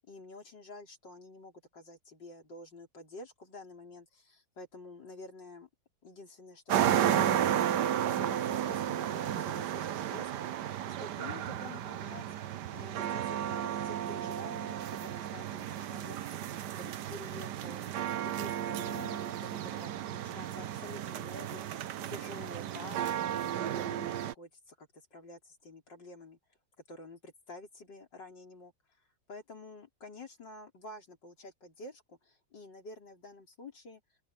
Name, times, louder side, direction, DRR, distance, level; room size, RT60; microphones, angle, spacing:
voice 1, 0.1-5.7 6.0-10.5 10.8-12.3 12.7-16.5 16.8-17.9 18.2-26.4 26.9-34.0, left 2 dB, 70° left, 5.2 m, -49 dB
sound 1, 6.7-24.3, right 10 dB, 70° right, 1.4 m, -33 dB
open air
omnidirectional pair, 2.0 m